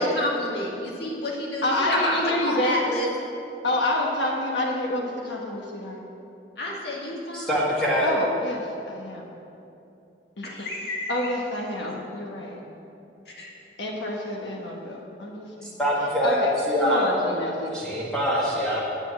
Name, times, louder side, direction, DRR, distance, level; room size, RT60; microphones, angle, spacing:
voice 1, 0.0-2.2 2.4-3.1 6.6-7.6 10.4-11.3 13.3-13.5, left 1 dB, 60° left, -4 dB, 2.2 m, -29 dB
voice 2, 1.6-2.8 3.6-6.0 8.0-9.3 10.4-10.5 11.1-12.6 13.8-15.8 16.2-16.5 16.8-17.7, left 1 dB, 85° left, -1 dB, 1.4 m, -28 dB
voice 3, 7.3-8.1 15.6-16.4 16.7-17.1 17.7-18.8, equal, 5° left, -7 dB, 1.6 m, -24 dB
8.6 x 7.2 x 7.5 m, 2.7 s
head